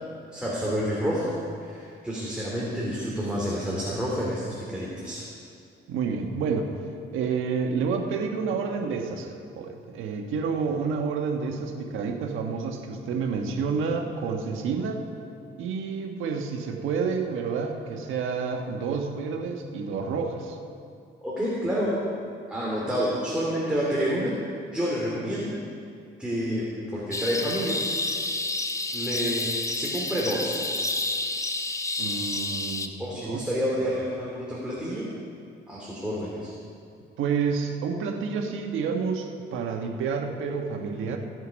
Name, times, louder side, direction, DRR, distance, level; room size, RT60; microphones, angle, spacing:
voice 1, 0.3-5.2 21.2-21.9 22.5-24.4 24.7-25.5 26.2-26.7 26.9-27.8 28.9-30.6 33.0-35.1 35.7-36.5, equal, 5° right, -6 dB, 2.8 m, -29 dB
voice 2, 5.9-6.7 7.1-15.0 15.6-20.6 32.0-33.0 33.2-33.4 37.2-41.2, right 5 dB, 85° right, 3 dB, 1.3 m, -29 dB
sound 1, 27.1-32.9, left 2 dB, 15° left, 0.7 m, -29 dB
16.5 x 8.0 x 5.2 m, 2.4 s
cardioid pair, 90°, 20 cm